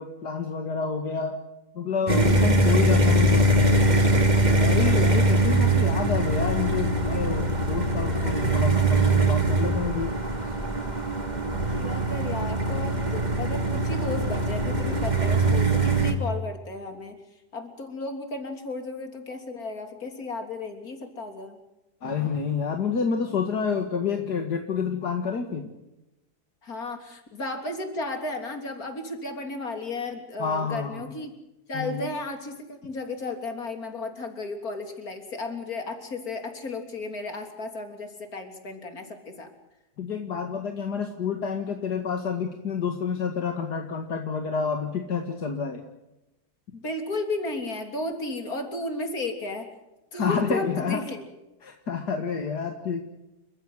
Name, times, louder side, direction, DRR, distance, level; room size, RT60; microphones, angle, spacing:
voice 1, 0.0-1.4 1.7-10.1 10.4-10.5 22.0-25.7 30.4-31.1 31.7-32.1 40.0-45.8 50.2-51.0 51.6-53.0, left 6 dB, 80° left, 4 dB, 2.5 m, -29 dB
sound 1, 2.1-16.1, right 1 dB, 25° right, 3.0 m, -22 dB
voice 2, 11.8-17.2 17.5-21.6 26.6-31.3 31.7-39.5 46.7-49.7 50.1-51.3, left 2 dB, 65° left, 5 dB, 3.9 m, -34 dB
29.5 x 15.5 x 8.0 m, 0.96 s
omnidirectional pair, 1.7 m